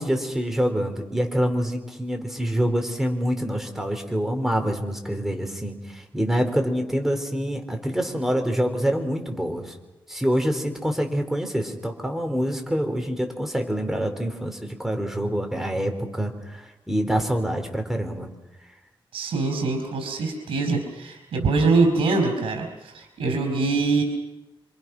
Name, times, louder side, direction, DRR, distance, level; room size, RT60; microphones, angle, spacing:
voice 1, 0.0-9.7 10.1-18.3, equal, 5° right, 4 dB, 4.3 m, -26 dB
voice 2, 19.1-24.0, right 3 dB, 80° right, 5 dB, 4.9 m, -23 dB
28.5 x 25.5 x 6.2 m, 0.97 s
wide cardioid pair, 105°, 9 cm